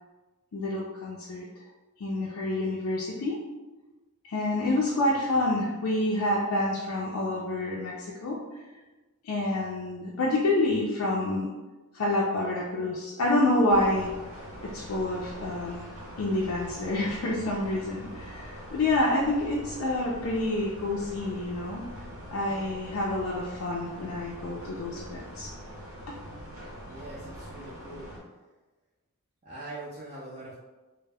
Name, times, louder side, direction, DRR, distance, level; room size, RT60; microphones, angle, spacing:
voice 1, 0.5-1.5 2.0-3.4 4.2-8.4 9.2-11.5 11.9-14.1 14.6-15.9 16.2-21.8 22.3-25.5 26.1-26.2, left 2 dB, 75° left, -5 dB, 0.4 m, -28 dB
sound 1, 13.7-28.2, equal, 65° right, 0.9 m, -43 dB
voice 2, 26.9-28.1 29.4-30.6, right 2 dB, 30° right, -8 dB, 0.4 m, -42 dB
2.1 x 2.0 x 3.3 m, 1.2 s
head